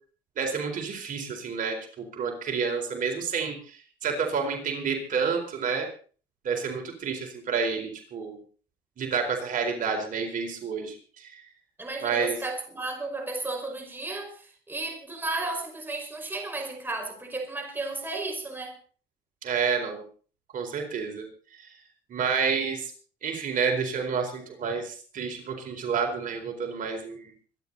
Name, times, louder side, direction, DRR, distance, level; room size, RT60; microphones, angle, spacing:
voice 1, 0.4-5.9 6.4-8.4 9.0-11.4 12.0-12.4 19.4-20.0 20.5-21.2 21.6-21.7 22.1-22.9 23.2-27.3, right 5 dB, 50° right, 4.4 m, -29 dB
voice 2, 11.8-18.8, right 2 dB, 10° right, 5.2 m, -34 dB
25.5 x 10.5 x 4.1 m
cardioid pair, 110°, 17 cm